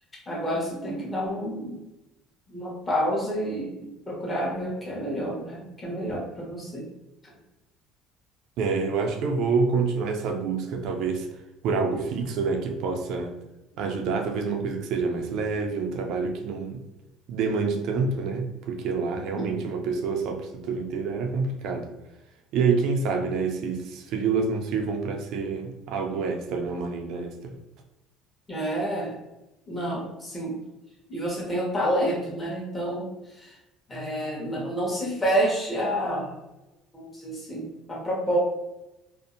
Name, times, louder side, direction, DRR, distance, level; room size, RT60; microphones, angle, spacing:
voice 1, 0.3-1.8 2.5-3.7 4.1-6.9 19.4-19.5 28.5-29.2 29.7-30.6 31.1-33.6 33.9-36.3 36.9-38.4, equal, 20° left, -4 dB, 1.0 m, -29 dB
voice 2, 8.6-11.3 11.6-13.3 13.8-16.8 17.3-21.9 22.5-27.6, right 4 dB, 65° right, 4 dB, 0.3 m, -27 dB
2.6 x 2.0 x 2.5 m, 0.96 s
cardioid pair, 115°, 0 cm